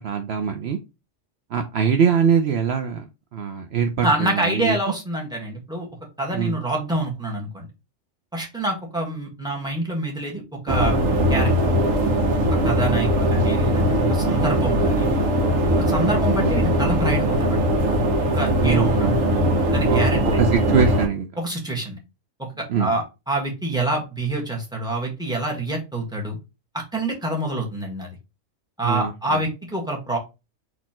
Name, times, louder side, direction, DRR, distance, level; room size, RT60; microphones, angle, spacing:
voice 1, 0.0-0.8 1.5-3.0 3.3-4.8 6.3-6.6 18.5-19.2 19.9-20.0 20.4-21.3 22.7-22.9 28.8-29.1, right 6 dB, 65° right, 5 dB, 0.8 m, -22 dB
voice 2, 4.0-5.9 6.2-7.7 8.3-11.0 11.3-11.5 12.6-15.1 15.9-17.8 18.3-19.2 19.7-20.5 21.4-22.0 22.4-26.4 26.7-28.1 28.8-30.2, right 2 dB, 5° right, -1 dB, 1.5 m, -26 dB
sound 1, 10.7-21.1, equal, 90° right, 1.3 m, -20 dB
4.2 x 3.0 x 4.2 m, 0.26 s
omnidirectional pair, 1.3 m